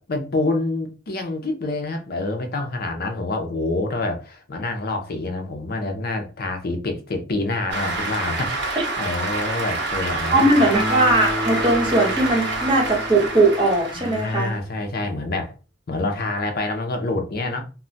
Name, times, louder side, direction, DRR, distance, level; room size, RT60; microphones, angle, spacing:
voice 1, 0.0-10.7 13.9-15.5 15.9-17.6, left 2 dB, 55° left, 0.5 m, -27 dB
Cheering / Applause, 7.7-14.6, right 2 dB, 65° right, 0.7 m, -27 dB
voice 2, 10.3-14.5, right 2 dB, 25° right, 0.9 m, -19 dB
Acoustic guitar, 10.7-14.3, left 1 dB, ahead, 0.4 m, -30 dB
2.2 x 2.1 x 3.8 m
head